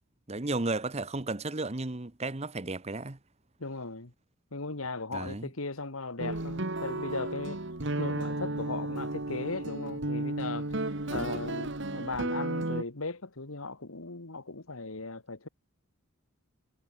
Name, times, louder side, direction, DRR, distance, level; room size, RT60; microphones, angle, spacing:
voice 1, 0.3-3.2 5.1-5.5 11.1-11.4, right 2 dB, 30° right, 1.0 m, -34 dB
voice 2, 3.6-4.1 4.5-7.6 8.0-10.7 11.1-15.5, left 3 dB, 75° left, 1.9 m, -37 dB
sound 1, 6.2-12.8, right 2 dB, 55° right, 1.8 m, -33 dB
head